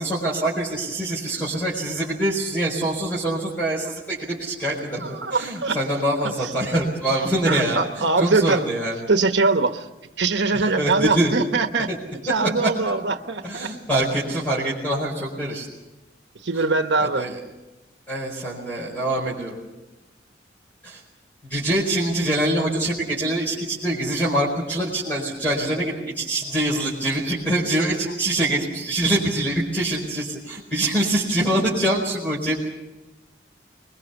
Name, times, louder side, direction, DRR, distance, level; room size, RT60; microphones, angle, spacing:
voice 1, 0.0-9.0 10.8-11.3 11.9-12.0 12.6-12.7 13.4-15.7 17.0-17.4 18.1-19.6 20.8-21.0 21.5-32.7, right 1 dB, 10° left, -4 dB, 4.7 m, -24 dB
voice 2, 5.0-5.8 6.4-6.5 7.4-8.7 9.1-9.9 10.2-11.9 12.2-13.7 16.4-17.3, right 3 dB, 75° right, 7 dB, 1.0 m, -22 dB
25.0 x 22.0 x 7.0 m, 1.1 s
head